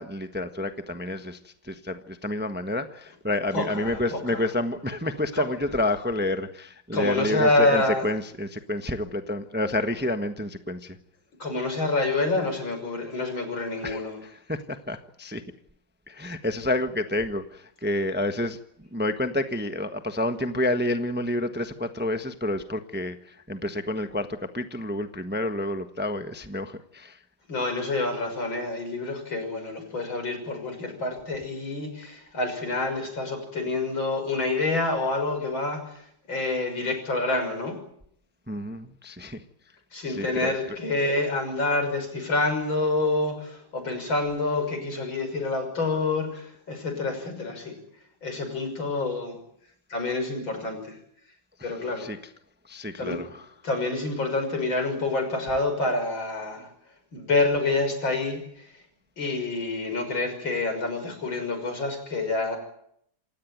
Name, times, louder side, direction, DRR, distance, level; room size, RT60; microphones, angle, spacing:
voice 1, 0.0-11.0 13.8-15.4 16.1-27.2 38.5-39.4 40.0-40.8 51.6-52.2 52.6-53.5, left 1 dB, 5° right, 8 dB, 0.9 m, -29 dB
voice 2, 3.5-4.4 5.3-5.4 6.9-8.0 11.4-14.2 27.5-37.8 39.9-47.8 48.2-49.4 49.9-51.0 51.6-52.1 53.0-53.2 53.6-56.7 57.1-58.8 59.2-62.6, left 2 dB, 85° left, 6 dB, 6.9 m, -27 dB
28.0 x 16.5 x 9.3 m, 0.72 s
omnidirectional pair, 2.1 m